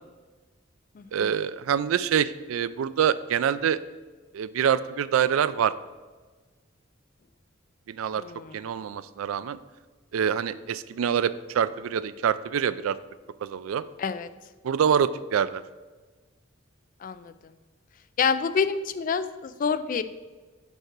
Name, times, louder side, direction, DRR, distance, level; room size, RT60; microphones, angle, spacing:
voice 1, 1.1-3.8 4.3-5.7 7.9-8.2 8.5-9.6 10.1-13.0 13.4-13.8 14.6-15.6, right 8 dB, 90° right, 15 dB, 0.3 m, -25 dB
voice 2, 8.2-8.6 14.0-14.3 17.0-17.3 18.2-20.0, left 6 dB, 40° left, 12 dB, 0.3 m, -27 dB
5.4 x 4.9 x 6.0 m, 1.3 s
head